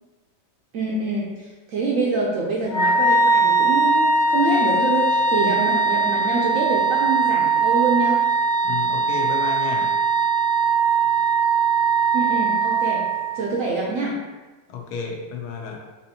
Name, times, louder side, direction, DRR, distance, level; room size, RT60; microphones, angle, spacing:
voice 1, 0.7-8.2 12.1-13.1 13.3-14.2, right 3 dB, 70° right, -3 dB, 0.8 m, -25 dB
Wind instrument woodwind instrument, 2.7-13.5, right 4 dB, 55° left, 0.5 m, -20 dB
voice 2, 8.6-10.0 14.7-15.8, left 6 dB, 75° left, 0 dB, 1.1 m, -31 dB
4.1 x 2.7 x 2.7 m, 1.2 s
omnidirectional pair, 1.8 m